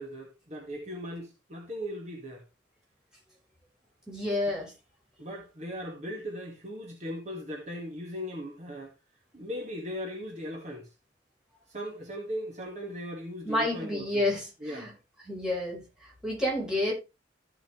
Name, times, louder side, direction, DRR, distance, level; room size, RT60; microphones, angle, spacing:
voice 1, 0.0-2.4 4.5-4.6 5.2-8.9 9.3-10.9 11.7-14.3 14.6-14.9, equal, 40° right, 2.0 m, -38 dB
voice 2, 4.1-4.7 13.4-14.9 15.3-16.9, left 1 dB, 5° right, 4.8 m, -30 dB
14.5 x 5.9 x 3.3 m
head